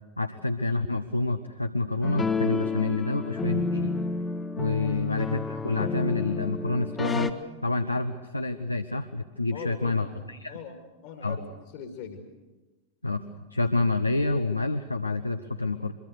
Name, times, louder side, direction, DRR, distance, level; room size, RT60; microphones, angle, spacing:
voice 1, 0.2-3.9 4.6-7.3 7.6-10.6 11.2-11.4 13.0-15.9, left 2 dB, 85° left, 8 dB, 0.9 m, -28 dB
sound 1, 2.0-7.3, left 4 dB, 15° left, 1.2 m, -30 dB
voice 2, 4.8-5.1 9.5-10.2 10.5-11.4 11.7-12.2, left 7 dB, 45° left, 5 dB, 2.2 m, -41 dB
23.5 x 23.5 x 6.6 m, 1.2 s
figure-of-eight pair, 90°, 0 cm